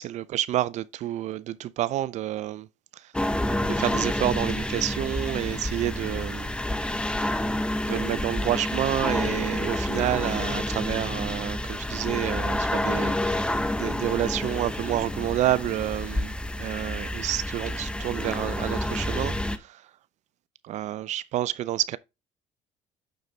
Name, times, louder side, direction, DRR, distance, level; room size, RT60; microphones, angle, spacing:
voice 1, 0.0-2.7 2.9-3.1 3.7-6.5 7.1-7.5 7.8-19.9 20.6-22.0, right 13 dB, 60° right, 0.4 m, -29 dB
sound 1, 3.1-19.6, left 1 dB, 5° left, 0.6 m, -29 dB
9.2 x 3.8 x 3.2 m
supercardioid pair, 85°, 14 cm